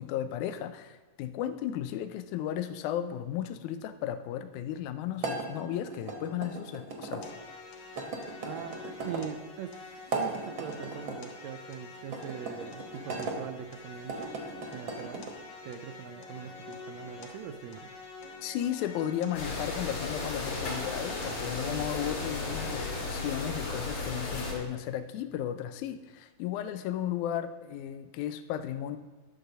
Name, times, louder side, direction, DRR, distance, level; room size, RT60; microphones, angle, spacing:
voice 1, 0.0-7.3 18.4-29.0, left 10 dB, 80° left, 10 dB, 1.9 m, -34 dB
sound 1, 5.2-7.2 7.9-9.3 10.0-11.2 12.0-13.4 14.0-15.3, right 3 dB, 60° right, 1.3 m, -37 dB
sound 2, 7.2-23.2, left 3 dB, 65° left, 1.9 m, -47 dB
voice 2, 8.4-9.8 10.1-14.3 14.7-15.3 15.6-17.9, right 8 dB, 85° right, 7 dB, 1.5 m, -42 dB
sound 3, 19.3-24.5, left 3 dB, 45° left, 2.7 m, -35 dB
11.5 x 4.8 x 6.6 m, 1.3 s
omnidirectional pair, 3.7 m